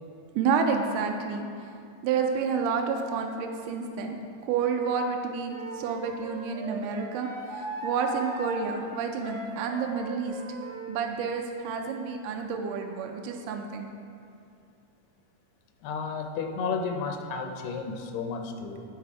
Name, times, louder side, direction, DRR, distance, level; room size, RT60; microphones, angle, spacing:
voice 1, 0.4-1.5 2.0-4.2 4.4-10.4 10.9-13.9, right 5 dB, 85° right, 3 dB, 1.9 m, -29 dB
Wind instrument woodwind instrument, 5.5-10.9, right 3 dB, 65° right, 1.6 m, -39 dB
voice 2, 15.8-18.8, left 5 dB, 75° left, 3 dB, 2.1 m, -32 dB
11.5 x 4.1 x 4.7 m, 2.4 s
omnidirectional pair, 4.3 m